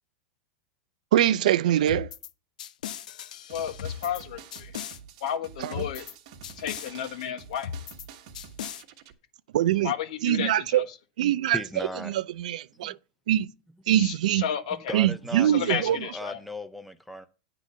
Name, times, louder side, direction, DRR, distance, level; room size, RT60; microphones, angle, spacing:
voice 1, 1.1-2.1 5.6-5.8 9.5-9.9 10.2-10.8 11.2-11.6 12.1-13.0 13.3-13.5 13.9-14.4 14.9-16.0, right 12 dB, 75° right, 0.4 m, -23 dB
sound 1, 1.9-2.3 2.6-4.2 4.5-5.0 5.7-6.1 6.4-6.9 7.6-8.1 8.4-8.8, left 9 dB, 85° left, 0.7 m, -37 dB
voice 2, 3.5-4.7 5.2-6.1 6.6-7.7 9.8-10.8 14.0-15.0 15.4-16.4, left 9 dB, 60° left, 1.3 m, -32 dB
sound 2, 3.5-9.1, right 7 dB, 45° right, 1.2 m, -48 dB
voice 3, 11.5-12.1 13.9-14.0 14.7-17.3, left 1 dB, ahead, 0.4 m, -37 dB
9.8 x 3.8 x 7.3 m
supercardioid pair, 175°, 4 cm